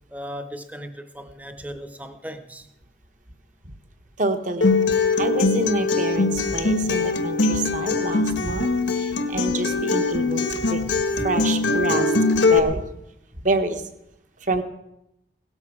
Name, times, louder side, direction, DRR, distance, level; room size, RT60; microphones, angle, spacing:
voice 1, 0.1-2.7, equal, 10° right, 9 dB, 0.8 m, -37 dB
voice 2, 4.2-4.8 5.2-12.1 12.5-12.9 13.4-13.8 14.4-14.6, right 2 dB, 45° right, 8 dB, 1.1 m, -27 dB
Acoustic guitar, 4.6-12.6, left 3 dB, 85° left, 1.3 m, -22 dB
17.0 x 13.5 x 4.8 m, 0.86 s
head